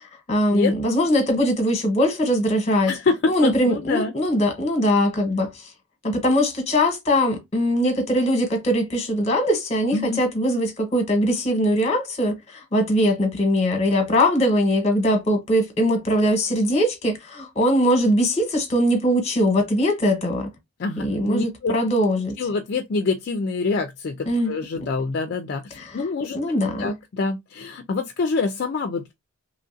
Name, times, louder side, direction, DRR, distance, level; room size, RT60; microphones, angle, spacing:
voice 1, 0.3-3.0 3.3-5.5 6.0-20.5 21.0-22.3 24.3-24.5 25.8-26.0 26.3-27.0, equal, 30° left, 1.0 m, -21 dB
voice 2, 2.9-4.1 9.9-10.2 20.8-21.7 22.4-26.4 26.8-29.1, left 4 dB, 45° left, 0.4 m, -26 dB
3.0 x 2.5 x 2.5 m
head